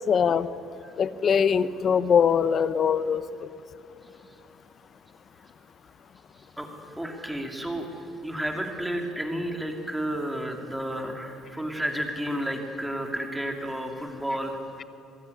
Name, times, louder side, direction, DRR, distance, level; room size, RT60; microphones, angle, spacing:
voice 1, 0.1-0.5 1.0-3.5, left 7 dB, 30° left, 15 dB, 0.8 m, -22 dB
voice 2, 7.0-7.9 8.2-14.6, equal, 5° right, 3 dB, 2.6 m, -31 dB
24.5 x 21.0 x 9.7 m, 2.7 s
cardioid pair, 170°, 0 cm